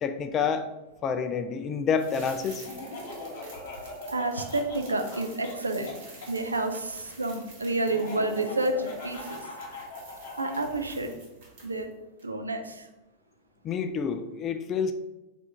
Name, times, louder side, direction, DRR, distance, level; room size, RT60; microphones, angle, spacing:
voice 1, 0.0-0.7 1.0-2.7 13.6-14.9, left 6 dB, 30° left, 9 dB, 0.3 m, -28 dB
sound 1, 1.9-11.9 12.2-12.3, right 2 dB, 55° right, 1.2 m, -49 dB
Laughter, 2.6-6.3 7.8-10.8, left 2 dB, 55° left, 1.1 m, -40 dB
voice 2, 4.1-5.9 6.3-9.4 10.4-11.2 11.6-11.9 12.2-12.9, right 2 dB, 80° right, 5 dB, 0.4 m, -29 dB
3.4 x 2.5 x 4.2 m, 1.0 s
figure-of-eight pair, 90°, 0 cm